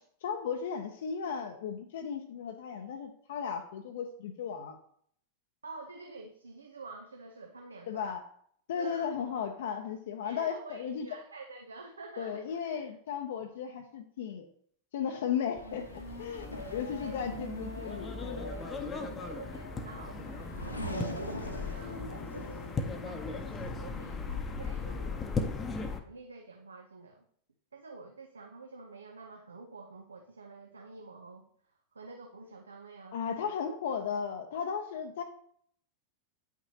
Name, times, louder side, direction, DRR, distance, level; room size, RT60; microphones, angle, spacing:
voice 1, 0.0-4.8 7.9-8.2 8.7-11.1 12.2-14.5 14.9-18.5 33.1-35.2, left 7 dB, 60° left, 4 dB, 0.6 m, -35 dB
voice 2, 5.6-8.1 8.7-9.1 10.2-12.9 17.0-17.2 19.0-25.3 26.1-27.2 27.7-31.5 31.9-33.5, right 3 dB, 75° right, 4 dB, 0.7 m, -48 dB
Race car auto racing / Accelerating revving vroom, 15.6-24.6, equal, 85° left, 1.1 m, -42 dB
sound 1, 15.6-26.0, left 4 dB, 20° left, 0.8 m, -38 dB
9.3 x 5.9 x 2.9 m, 0.63 s
figure-of-eight pair, 90°, 0 cm